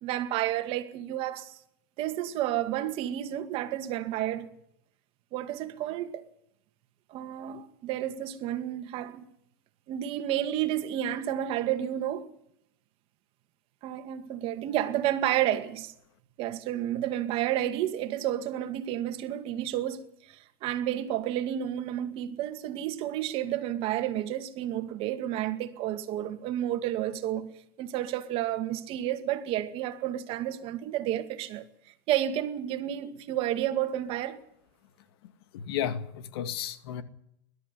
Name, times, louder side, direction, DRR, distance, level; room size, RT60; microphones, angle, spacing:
voice 1, 0.0-1.6 2.0-4.5 5.3-6.2 7.1-9.3 9.9-12.3 13.8-15.9 16.4-27.5 27.8-31.7 32.1-34.4, right 12 dB, 45° right, 2.1 m, -31 dB
voice 2, 35.5-37.0, left 9 dB, 75° left, 2.2 m, -33 dB
21.0 x 12.5 x 9.9 m
supercardioid pair, 140°, 13 cm